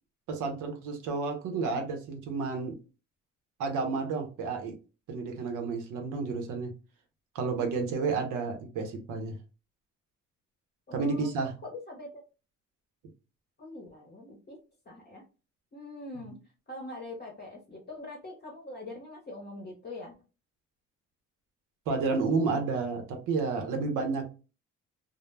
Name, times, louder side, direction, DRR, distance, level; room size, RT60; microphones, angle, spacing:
voice 1, 0.3-2.8 3.6-4.8 5.1-6.7 7.3-9.4 10.9-11.5 16.2-16.3 21.9-24.3, right 4 dB, 85° right, 4 dB, 0.7 m, -31 dB
voice 2, 10.9-11.3 11.6-12.2 13.6-14.6 14.9-15.2 15.7-16.4 16.7-20.1, left 2 dB, 35° left, 0 dB, 0.7 m, -43 dB
2.0 x 2.0 x 3.1 m, 0.32 s
cardioid pair, 90°, 30 cm